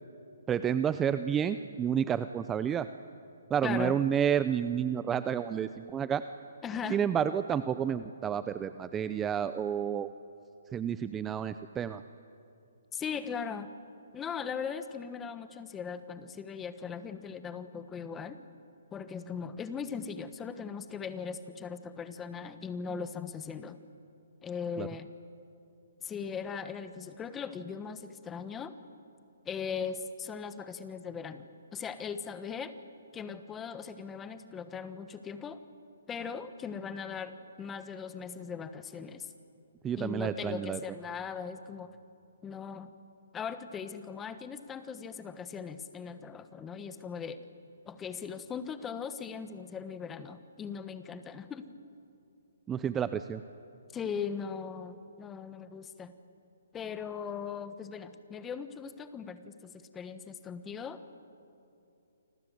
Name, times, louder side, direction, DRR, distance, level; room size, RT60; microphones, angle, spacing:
voice 1, 0.5-2.9 3.5-6.2 6.9-10.1 10.7-12.0 24.8-24.9 39.8-40.8 52.7-53.4, right 8 dB, 10° right, 12 dB, 0.5 m, -30 dB
voice 2, 3.6-4.0 6.6-7.0 12.9-13.7 14.1-18.4 18.9-23.8 24.4-25.1 26.0-28.7 29.4-31.5 31.7-32.7 33.1-35.6 36.1-39.3 40.0-41.9 42.4-42.9 43.3-47.4 47.8-51.7 53.9-56.1 56.7-61.2, left 6 dB, 10° left, 11 dB, 1.2 m, -39 dB
29.0 x 26.0 x 7.9 m, 2.7 s
hypercardioid pair, 160°, 0 cm